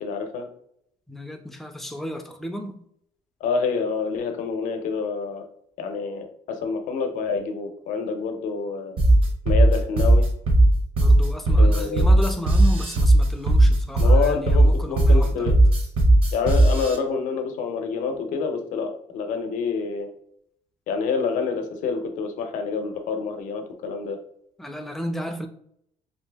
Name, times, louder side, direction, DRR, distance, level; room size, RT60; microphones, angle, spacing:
voice 1, 0.0-0.5 3.4-5.4 5.8-9.0 9.5-10.3 11.6-12.1 14.0-15.6 16.3-20.1 20.9-24.2, left 5 dB, 85° left, 6 dB, 0.6 m, -27 dB
voice 2, 1.1-2.8 11.0-15.5 24.6-25.5, equal, ahead, 4 dB, 0.3 m, -33 dB
sound 1, 9.0-17.0, right 1 dB, 45° right, 0.7 m, -16 dB
2.7 x 2.6 x 3.3 m, 0.69 s
cardioid pair, 165°, 13 cm